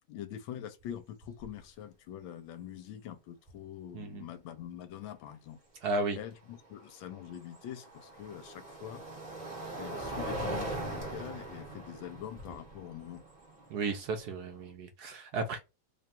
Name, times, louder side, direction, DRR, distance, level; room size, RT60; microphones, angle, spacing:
voice 1, 0.1-5.6 6.2-9.0 9.8-13.2, left 10 dB, 75° left, 1.4 m, -44 dB
sound 1, 0.8-0.9 1.2-1.6 3.5-3.6 6.6-14.7, right 1 dB, 30° right, 1.0 m, -41 dB
voice 2, 3.9-4.3 5.8-6.2 13.7-15.6, right 3 dB, 70° right, 0.9 m, -34 dB
3.3 x 2.3 x 4.1 m
omnidirectional pair, 2.2 m